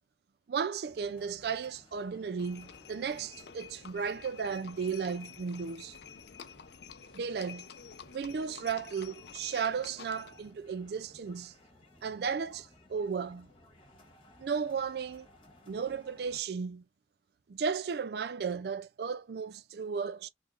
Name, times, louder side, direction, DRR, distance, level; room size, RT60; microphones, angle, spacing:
voice 1, 0.5-5.9 7.1-7.7 8.1-11.5 12.0-13.5 14.4-15.3 15.7-16.8 17.5-20.3, right 6 dB, 55° right, 0.4 m, -35 dB
sound 1, 0.8-16.4, left 1 dB, 30° left, 1.3 m, -60 dB
Livestock farm animals working animals, 2.4-10.5, left 7 dB, 65° left, 0.5 m, -50 dB
3.5 x 3.4 x 2.4 m
head